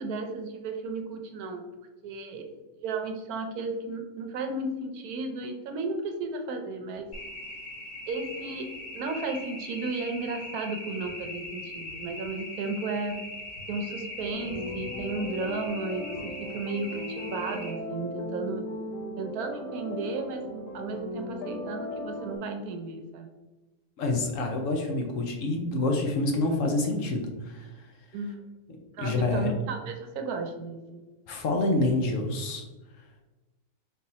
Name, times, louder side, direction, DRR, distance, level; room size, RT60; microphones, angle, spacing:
voice 1, 0.0-1.6 2.0-2.5 2.8-7.1 8.1-8.7 8.9-13.2 13.7-18.7 19.2-23.3 28.1-28.4 28.9-31.0, right 3 dB, 75° right, 5 dB, 1.1 m, -34 dB
sound 1, 7.1-17.7, left 1 dB, 35° left, 1.0 m, -40 dB
sound 2, 14.3-22.4, left 1 dB, 85° left, 1.3 m, -37 dB
voice 2, 24.0-27.9 29.0-29.5 31.3-32.6, left 2 dB, 65° left, 2 dB, 0.9 m, -27 dB
3.7 x 2.7 x 4.1 m, 1.1 s
omnidirectional pair, 1.6 m